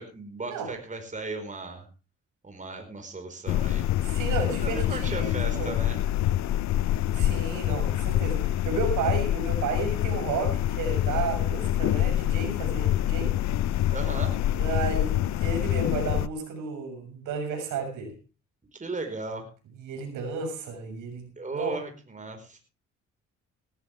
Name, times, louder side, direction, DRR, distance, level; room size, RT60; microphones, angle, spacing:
voice 1, 0.0-1.9 2.4-3.9 4.5-6.0 13.9-14.4 18.7-19.5 21.4-22.6, right 3 dB, 25° right, 5 dB, 4.9 m, -36 dB
sound 1, 3.5-16.3, left 13 dB, 65° left, 0.6 m, -26 dB
voice 2, 4.0-5.8 7.1-13.4 14.6-18.1 19.8-21.8, right 4 dB, 90° right, 4 dB, 6.8 m, -32 dB
18.5 x 14.0 x 3.5 m, 0.33 s
cardioid pair, 90°, 30 cm